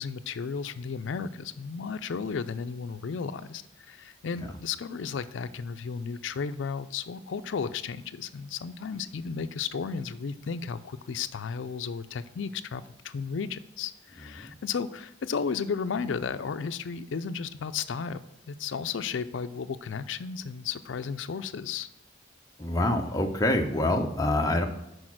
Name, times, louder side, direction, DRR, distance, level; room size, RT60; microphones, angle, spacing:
voice 1, 0.0-18.2 18.5-21.9, left 6 dB, 75° left, 11 dB, 0.4 m, -34 dB
voice 2, 22.6-24.7, left 1 dB, 20° left, 3 dB, 0.7 m, -26 dB
6.4 x 4.8 x 6.0 m, 0.90 s
head